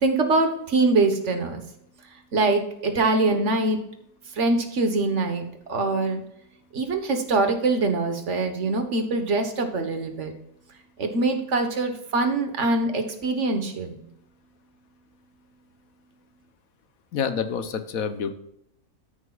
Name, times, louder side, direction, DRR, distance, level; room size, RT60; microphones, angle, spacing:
voice 1, 0.0-1.6 2.3-3.8 4.3-6.2 6.7-10.3 11.0-13.9, right 3 dB, 60° right, 6 dB, 1.5 m, -23 dB
voice 2, 17.1-18.3, left 7 dB, 85° left, 9 dB, 1.3 m, -27 dB
13.5 x 6.4 x 2.4 m, 0.77 s
omnidirectional pair, 1.4 m